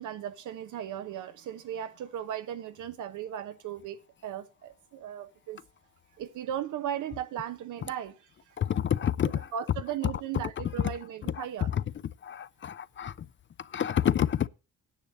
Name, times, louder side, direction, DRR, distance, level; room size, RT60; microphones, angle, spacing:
voice 1, 0.0-5.6 6.2-8.6 9.5-11.7, right 10 dB, 80° right, 1.2 m, -37 dB
voice 2, 8.6-9.4 11.4-11.5 11.7-11.8 12.2-13.3 13.6-14.5, left 9 dB, 40° left, 0.5 m, -28 dB
9.9 x 6.5 x 7.5 m
cardioid pair, 90°, 30 cm